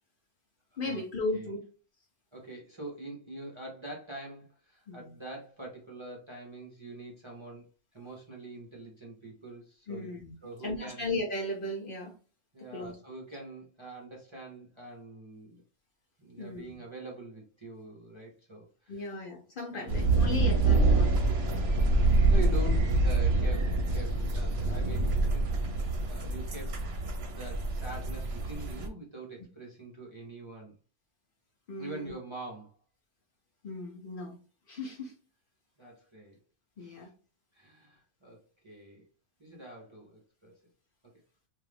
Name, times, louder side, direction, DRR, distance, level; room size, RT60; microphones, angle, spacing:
voice 1, 0.8-1.6 4.9-5.1 9.9-10.3 10.6-12.1 12.7-13.0 16.4-16.8 18.9-21.3 21.9-22.3 31.7-32.1 33.6-34.4 34.7-35.1 36.8-37.1, left 2 dB, 50° left, 1 dB, 0.8 m, -36 dB
voice 2, 2.3-10.1 10.4-11.0 12.5-15.6 16.2-19.2 19.7-19.9 22.3-26.8 27.2-30.7 31.8-32.7 35.8-36.4 36.8-37.1 37.5-39.0 39.4-40.6, right 2 dB, 30° right, -2 dB, 0.6 m, -44 dB
sound 1, 19.9-28.9, right 2 dB, 60° right, 0.9 m, -26 dB
2.6 x 2.4 x 3.3 m, 0.35 s
omnidirectional pair, 1.3 m